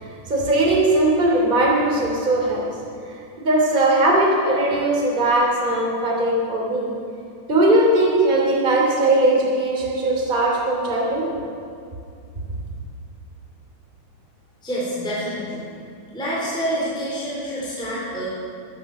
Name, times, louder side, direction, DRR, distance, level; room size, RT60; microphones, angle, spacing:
voice 1, 0.0-2.6 3.4-6.9 7.5-11.3, right 1 dB, 15° right, -3 dB, 2.8 m, -19 dB
voice 2, 14.6-15.6 16.1-18.2, equal, ahead, -7 dB, 3.5 m, -27 dB
16.5 x 10.0 x 7.1 m, 2.4 s
omnidirectional pair, 3.7 m